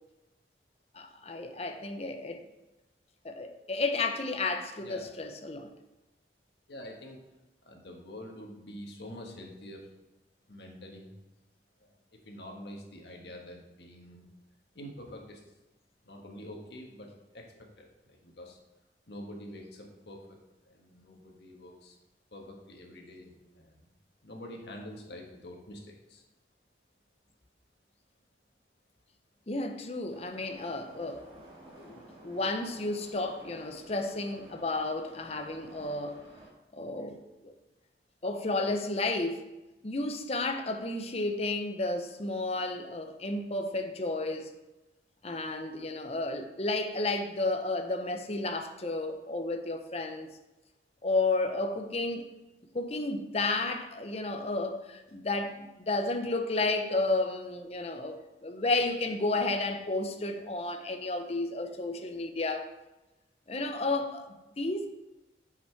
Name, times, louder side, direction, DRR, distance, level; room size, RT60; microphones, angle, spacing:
voice 1, 0.9-2.4 3.2-5.7 29.5-31.2 31.8-36.2 36.7-37.2 37.4-37.5 38.2-39.5 39.8-44.5 45.2-50.3 51.0-52.3 52.7-62.7 63.5-64.3 64.6-64.9, left 2 dB, 35° left, 0.7 m, -32 dB
voice 2, 6.7-7.2 7.6-9.9 10.5-11.1 11.8-14.2 14.7-15.4 16.0-18.6 19.1-20.4 20.6-22.0 22.3-23.9 24.2-26.2, left 1 dB, 75° left, 1.5 m, -46 dB
Subway metro underground, 30.1-36.5, right 1 dB, 30° right, 1.7 m, -52 dB
7.3 x 5.9 x 4.6 m
head